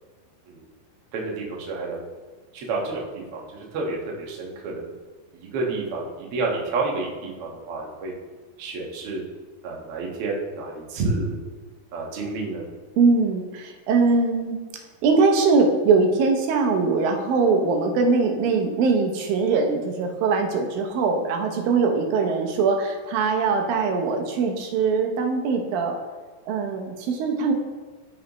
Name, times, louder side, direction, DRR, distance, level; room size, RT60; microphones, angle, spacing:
voice 1, 1.1-2.0 2.5-4.9 5.3-8.1 8.6-9.2 9.6-11.4 11.9-12.6, right 3 dB, 55° right, -2 dB, 1.6 m, -29 dB
voice 2, 13.0-14.6 15.0-26.0 26.5-27.5, right 4 dB, 75° right, 3 dB, 2.5 m, -21 dB
13.0 x 5.4 x 3.0 m, 1.4 s
omnidirectional pair, 4.3 m